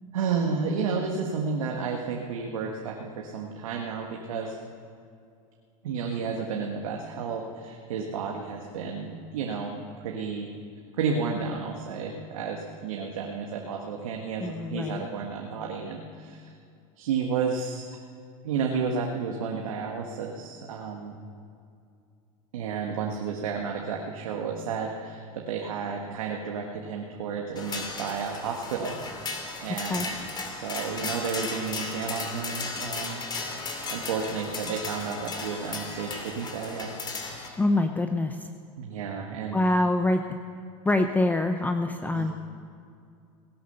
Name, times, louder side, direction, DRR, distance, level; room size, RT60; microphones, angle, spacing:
voice 1, 0.1-4.6 5.8-10.5 11.0-16.5 17.0-17.9 18.4-21.1 22.5-29.0 29.6-33.2 33.9-37.0 38.8-39.6 42.0-42.3, right 5 dB, 85° right, 1 dB, 1.6 m, -32 dB
voice 2, 14.4-15.0 29.8-30.1 37.6-38.5 39.5-40.3 40.8-42.3, left 2 dB, 10° left, 6 dB, 0.7 m, -25 dB
sound 1, 27.6-37.5, left 3 dB, 25° left, 2.5 m, -35 dB
18.0 x 11.0 x 6.7 m, 2.4 s
supercardioid pair, 110°, 17 cm